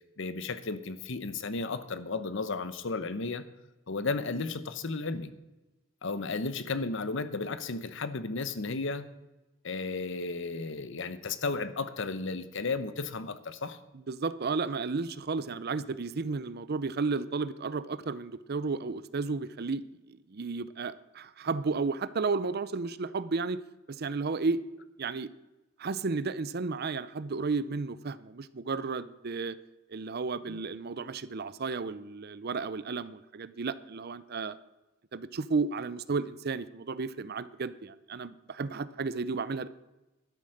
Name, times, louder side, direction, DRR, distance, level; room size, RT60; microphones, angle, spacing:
voice 1, 0.2-3.4 3.9-5.3 6.0-9.0 9.6-13.8 30.5-30.6, left 3 dB, 65° left, 13 dB, 0.9 m, -34 dB
voice 2, 13.9-23.6 23.9-24.6 25.0-25.3 25.8-29.6 29.9-34.6 35.1-39.7, right 4 dB, 50° right, 16 dB, 0.6 m, -33 dB
12.5 x 9.5 x 6.6 m, 1.0 s
head